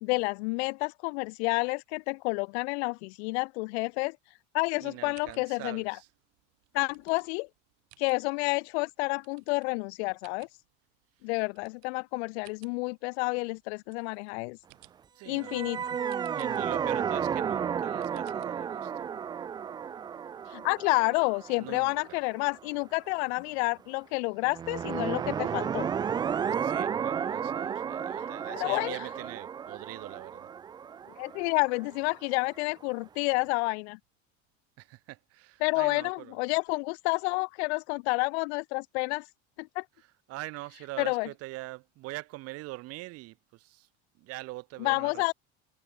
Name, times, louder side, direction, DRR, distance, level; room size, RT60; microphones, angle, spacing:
voice 1, 0.0-4.2 4.5-6.0 6.7-7.5 8.0-10.5 11.2-14.6 15.3-15.9 20.5-25.9 28.5-29.0 31.2-34.0 35.6-39.3 39.6-39.8 41.0-41.3 44.8-45.3, left 29 dB, 85° left, 0.9 m, -29 dB
sound 1, 4.6-18.9, right 31 dB, 80° right, 7.4 m, -63 dB
voice 2, 4.8-6.1 15.1-15.8 16.3-19.1 21.6-22.2 26.6-30.5 34.8-36.4 40.3-43.9 44.2-45.2, right 20 dB, 50° right, 3.3 m, -43 dB
sound 2, 15.3-22.6 24.5-32.3, right 7 dB, 15° right, 0.4 m, -33 dB
cardioid pair, 170°, 32 cm